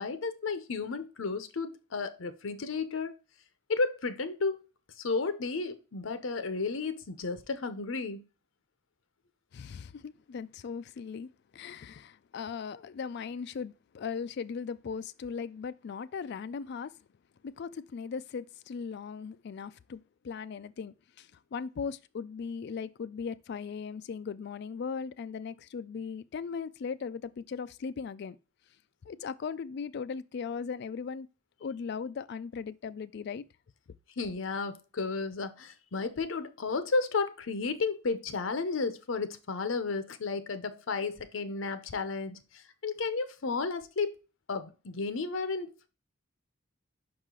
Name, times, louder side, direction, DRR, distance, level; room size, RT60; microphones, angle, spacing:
voice 1, 0.0-3.1 3.7-4.6 5.0-8.2 34.2-44.2 44.5-45.9, left 4 dB, 85° left, 0.7 m, -33 dB
voice 2, 9.5-16.9 17.4-20.0 20.2-28.4 29.1-31.3 31.6-33.4, left 6 dB, 60° left, 0.4 m, -38 dB
5.5 x 4.8 x 3.8 m
head